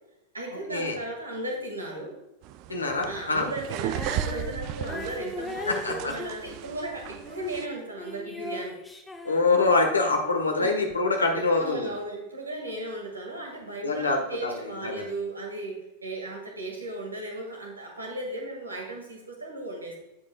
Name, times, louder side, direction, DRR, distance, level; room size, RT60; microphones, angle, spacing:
voice 1, 0.3-2.1 3.1-8.8 10.6-10.8 11.1-20.0, right 1 dB, 80° right, 1 dB, 2.0 m, -36 dB
sound 1, 2.4-7.7, right 12 dB, 45° right, 0.4 m, -36 dB
voice 2, 2.7-3.5 5.7-6.1 9.2-11.9 13.8-15.1, left 3 dB, 80° left, 3 dB, 1.4 m, -25 dB
Female singing, 3.8-10.2 10.9-11.0, left 2 dB, 10° left, 1.1 m, -39 dB
15.5 x 5.3 x 2.3 m, 0.95 s
figure-of-eight pair, 90°, 0 cm